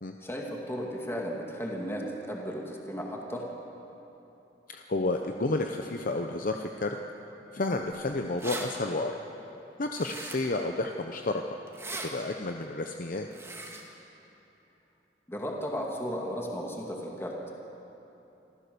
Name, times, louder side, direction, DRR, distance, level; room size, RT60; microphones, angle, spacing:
voice 1, 0.2-3.4 15.3-17.3, equal, 15° left, -1 dB, 2.1 m, -35 dB
voice 2, 4.7-7.0 7.5-9.1 9.8-11.4 12.0-13.3, left 2 dB, 50° left, 4 dB, 0.8 m, -31 dB
sound 1, 7.9-8.0 8.2-8.7 9.9-10.6 11.7-12.1 13.3-13.8, right 2 dB, 15° right, 2.1 m, -39 dB
26.5 x 14.5 x 6.9 m, 3.0 s
head